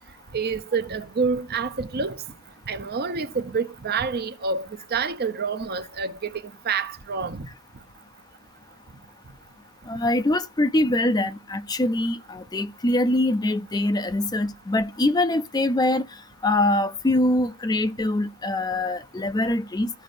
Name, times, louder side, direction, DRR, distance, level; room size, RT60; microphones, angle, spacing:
voice 1, 0.3-2.2 2.7-7.5, right 5 dB, 45° right, 0.7 m, -28 dB
voice 2, 9.9-16.1 16.4-19.9, left 1 dB, 20° left, 0.4 m, -23 dB
14.5 x 5.3 x 2.5 m
head